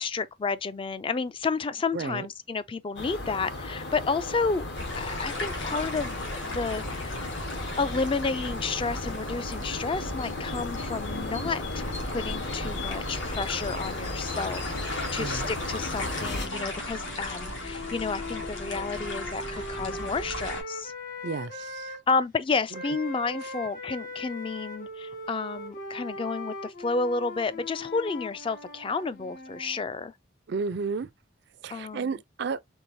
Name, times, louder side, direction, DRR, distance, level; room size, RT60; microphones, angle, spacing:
voice 1, 0.0-4.7 5.0-11.8 12.1-20.9 21.9-30.1 31.7-32.1, left 4 dB, 25° left, 0.3 m, -31 dB
voice 2, 1.9-2.3 15.2-15.5 21.2-21.9 30.5-31.1 31.6-32.6, right 5 dB, 60° right, 0.4 m, -32 dB
sound 1, 3.0-16.5, left 2 dB, 60° left, 1.2 m, -35 dB
sound 2, 4.7-20.6, left 1 dB, 75° left, 1.9 m, -37 dB
sound 3, 15.7-22.0 22.7-29.8, left 2 dB, 40° left, 1.7 m, -40 dB
4.6 x 3.7 x 2.6 m
head